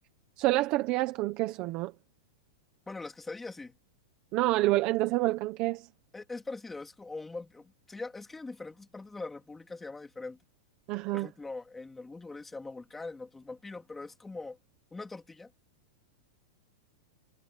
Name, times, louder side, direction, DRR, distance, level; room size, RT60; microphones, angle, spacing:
voice 1, 0.4-1.9 4.3-5.8 10.9-11.3, right 19 dB, 35° right, 1.2 m, -28 dB
voice 2, 2.9-3.7 6.1-10.4 11.1-14.6 14.9-15.5, left 3 dB, 5° left, 3.0 m, -42 dB
supercardioid pair, 160°, 3 cm